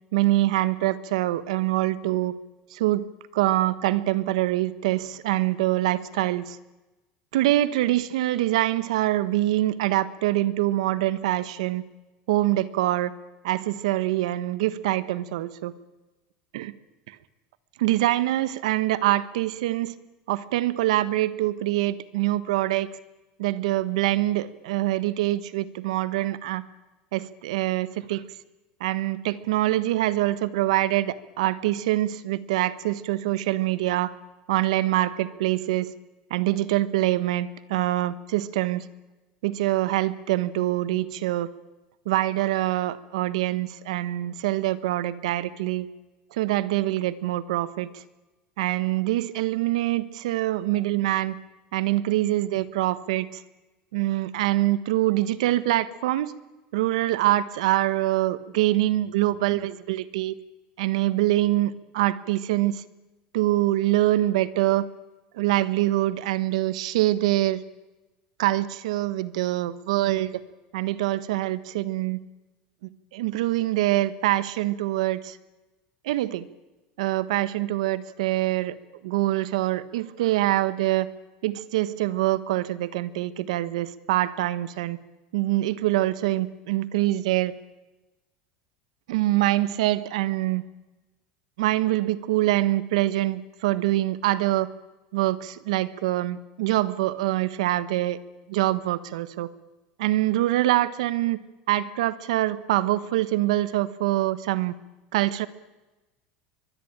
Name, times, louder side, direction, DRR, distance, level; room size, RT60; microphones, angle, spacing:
voice 1, 0.1-2.3 2.7-3.0 3.3-6.6 7.3-11.8 12.3-13.1 13.4-15.7 16.5-16.7 17.1-17.2 17.8-19.9 20.3-22.9 23.4-26.6 27.1-28.2 28.8-34.1 34.5-35.9 36.3-38.8 39.4-41.5 42.0-45.9 46.3-47.9 48.6-51.3 51.7-53.4 53.9-56.3 56.7-60.3 60.8-62.8 63.3-64.9 65.3-67.6 68.4-70.3 70.7-72.2 73.1-75.4 76.0-76.5 77.0-78.7 79.0-81.1 81.4-85.0 85.3-87.5 89.1-90.6 91.6-94.7 95.1-98.2 98.5-99.5 100.0-101.4 101.7-104.7 105.1-105.5, right 15 dB, 85° right, 15 dB, 1.3 m, -24 dB
23.5 x 20.5 x 8.9 m, 1.1 s
supercardioid pair, 135°, 3 cm